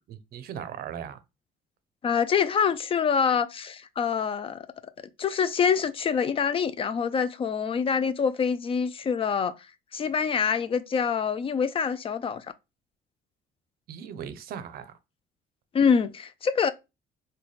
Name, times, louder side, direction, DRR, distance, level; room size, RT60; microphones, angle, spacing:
voice 1, 0.1-1.2 13.9-14.9, right 8 dB, 65° right, 0.5 m, -38 dB
voice 2, 2.0-4.7 5.2-9.5 9.9-12.5 15.7-16.7, left 6 dB, 35° left, 0.3 m, -25 dB
3.9 x 2.2 x 3.2 m
cardioid pair, 110°, 17 cm